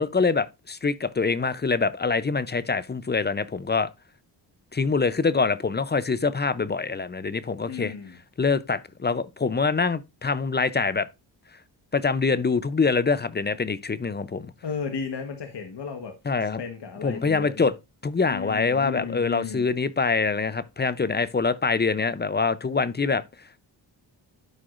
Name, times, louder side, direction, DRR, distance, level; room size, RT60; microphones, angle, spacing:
voice 1, 0.0-3.9 4.7-7.9 8.4-11.1 11.9-14.5 16.3-16.6 17.0-17.7 18.0-23.2, left 4 dB, 25° left, 0.6 m, -25 dB
voice 2, 7.7-8.2 14.6-16.1 16.6-17.7 18.3-19.7, left 6 dB, 60° left, 1.3 m, -34 dB
12.5 x 4.8 x 2.5 m
cardioid pair, 70°, 46 cm